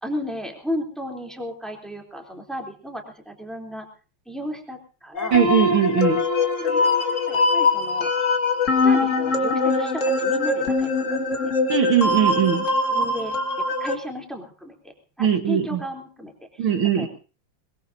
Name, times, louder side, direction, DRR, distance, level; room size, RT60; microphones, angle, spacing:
voice 1, 0.0-3.9 4.2-5.4 6.4-8.1 8.8-11.8 12.9-16.7 16.9-17.1, equal, ahead, 2 dB, 3.2 m, -34 dB
sound 1, 5.1-13.9, left 3 dB, 35° left, 1.8 m, -22 dB
voice 2, 5.3-6.2 11.7-12.7 15.2-15.8 16.6-17.1, right 9 dB, 65° right, 5 dB, 2.2 m, -20 dB
22.0 x 22.0 x 2.7 m, 0.36 s
omnidirectional pair, 2.4 m